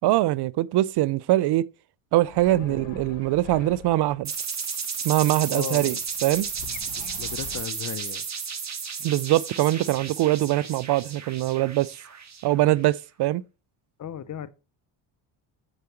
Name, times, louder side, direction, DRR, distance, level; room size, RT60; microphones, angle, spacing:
voice 1, 0.0-1.6 2.1-4.3 5.0-6.0 6.2-6.5 9.0-11.9 12.4-13.4, right 15 dB, 55° right, 0.5 m, -22 dB
sound 1, 2.2-4.3 5.8-7.6, left 11 dB, 75° left, 1.2 m, -44 dB
voice 2, 2.5-2.8 5.5-6.0 7.0-8.2 14.0-14.5, left 9 dB, 35° left, 0.7 m, -36 dB
sound 2, 4.2-12.8, right 6 dB, 35° right, 1.5 m, -33 dB
8.1 x 4.8 x 4.4 m
supercardioid pair, 75°, 48 cm